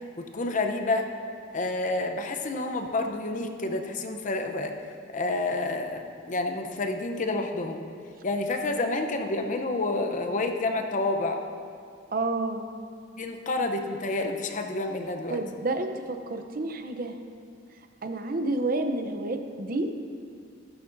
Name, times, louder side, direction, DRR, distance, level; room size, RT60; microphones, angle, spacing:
voice 1, 0.2-1.1 1.5-4.7 5.1-7.8 8.2-11.4 13.2-15.4, left 2 dB, 40° left, 5 dB, 0.7 m, -29 dB
voice 2, 12.1-12.7 15.3-17.2 18.0-19.9, right 2 dB, 50° right, 7 dB, 0.7 m, -29 dB
14.0 x 11.0 x 2.6 m, 2.4 s
head